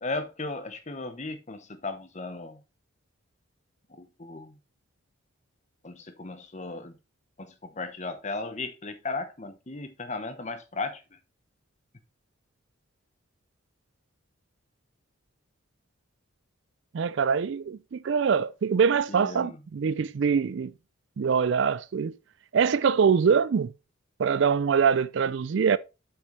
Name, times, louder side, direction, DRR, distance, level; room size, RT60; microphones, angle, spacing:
voice 1, 0.0-2.6 3.9-4.5 5.8-6.9 7.4-11.0 19.1-19.6, left 3 dB, 35° left, 1.0 m, -36 dB
voice 2, 16.9-20.7 21.2-22.1 22.5-23.7 24.2-25.8, right 6 dB, 55° right, 0.4 m, -24 dB
7.9 x 6.2 x 3.2 m
head